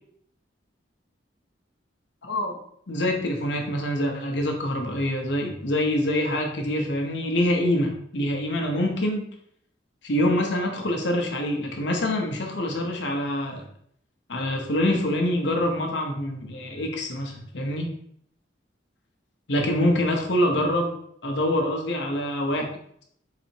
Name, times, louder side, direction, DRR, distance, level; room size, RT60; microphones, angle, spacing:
voice 1, 2.2-2.6 2.9-9.3 10.0-13.7 14.3-17.9 19.5-20.9 21.2-22.7, left 1 dB, 65° left, 2 dB, 0.9 m, -25 dB
4.2 x 2.9 x 4.4 m, 0.68 s
head